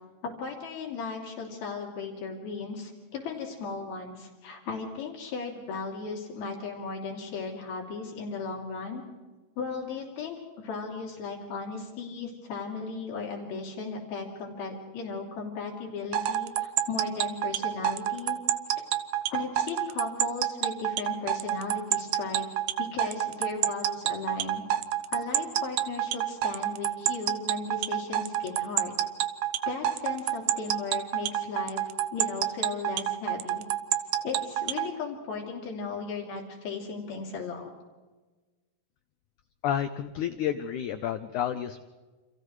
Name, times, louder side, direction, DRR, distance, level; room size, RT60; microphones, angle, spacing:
voice 1, 0.2-9.0 9.6-18.4 19.3-22.5 22.8-24.6 25.1-28.9 29.7-33.7 34.2-37.7, left 4 dB, 70° left, -1 dB, 4.8 m, -36 dB
sound 1, 16.1-34.9, right 12 dB, 75° right, 1.9 m, -27 dB
voice 2, 39.6-41.9, left 10 dB, 85° left, 8 dB, 1.7 m, -30 dB
29.5 x 28.0 x 3.2 m, 1.3 s
omnidirectional pair, 4.6 m